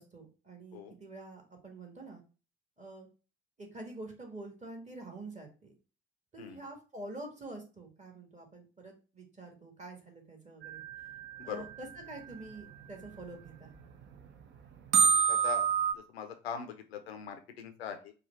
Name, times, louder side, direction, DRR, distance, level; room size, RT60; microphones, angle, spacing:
voice 1, 0.0-2.2 2.8-3.1 3.6-5.7 6.3-10.8 11.4-13.7, right 2 dB, 25° right, 2 dB, 1.6 m, -47 dB
sound 1, 10.6-12.3 13.1-13.2 13.7-13.8 14.0-14.1 14.9-15.9, right 6 dB, 40° right, 0.7 m, -28 dB
voice 2, 15.3-15.7 15.9-18.1, left 7 dB, 80° left, 7 dB, 0.6 m, -41 dB
4.9 x 2.3 x 3.9 m, 0.34 s
figure-of-eight pair, 50°, 31 cm